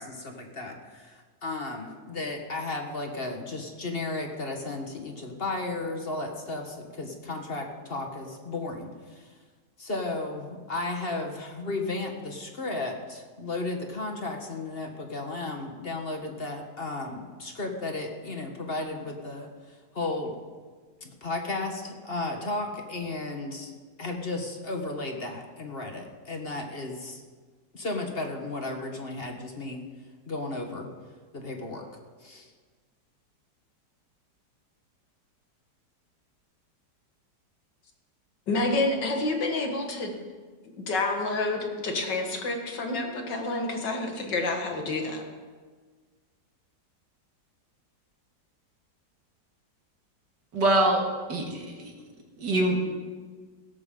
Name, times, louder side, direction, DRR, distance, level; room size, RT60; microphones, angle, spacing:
voice 1, 0.0-9.3 9.8-20.3 21.0-23.7 24.0-27.2 27.7-29.8 30.3-30.9 31.3-31.8 32.2-32.5, left 2 dB, 35° left, 3 dB, 1.4 m, -34 dB
voice 2, 38.5-40.1 40.7-45.2, left 2 dB, 75° left, 2 dB, 2.4 m, -28 dB
voice 3, 50.5-51.0 51.3-51.9 52.4-52.8, right 1 dB, 75° right, 1 dB, 2.6 m, -24 dB
16.5 x 13.5 x 3.8 m, 1.5 s
omnidirectional pair, 1.9 m